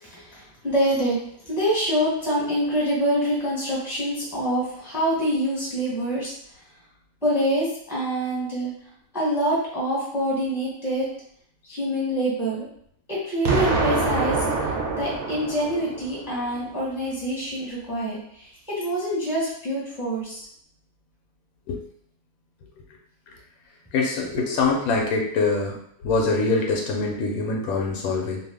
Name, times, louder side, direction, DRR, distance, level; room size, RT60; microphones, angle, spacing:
voice 1, 0.0-1.2 1.4-6.3 7.2-8.7 9.1-11.1 11.7-12.6 13.1-14.4 15.0-20.4 24.2-24.8, equal, ahead, -7 dB, 0.8 m, -26 dB
Explosion, 13.4-16.4, right 3 dB, 65° right, 0.8 m, -25 dB
voice 2, 23.9-25.7 26.0-28.4, left 3 dB, 75° left, 0 dB, 1.0 m, -24 dB
2.6 x 2.4 x 3.4 m, 0.68 s
omnidirectional pair, 1.6 m